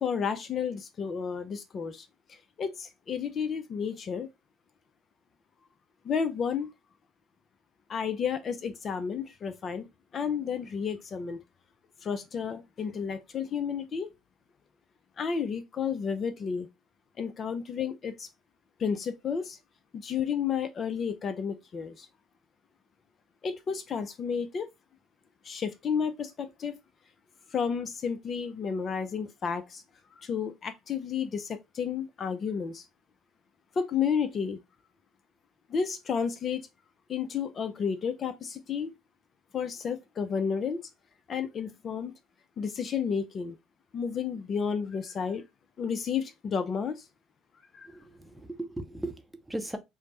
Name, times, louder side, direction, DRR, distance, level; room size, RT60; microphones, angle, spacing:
voice 1, 0.0-4.3 6.0-6.7 7.9-9.9 10.1-11.4 12.0-14.1 15.2-16.7 17.2-18.3 18.8-19.6 19.9-22.1 23.4-24.7 25.4-26.8 27.5-29.8 30.1-32.9 33.8-34.6 35.7-36.7 37.1-38.9 39.5-40.9 41.3-42.1 42.6-43.6 43.9-45.4 45.8-47.0 47.7-47.9, left 6 dB, 45° left, 0.4 m, -31 dB
voice 2, 47.8-49.8, right 1 dB, 10° right, 0.6 m, -37 dB
3.1 x 2.0 x 2.9 m
hypercardioid pair, 65°, 0 cm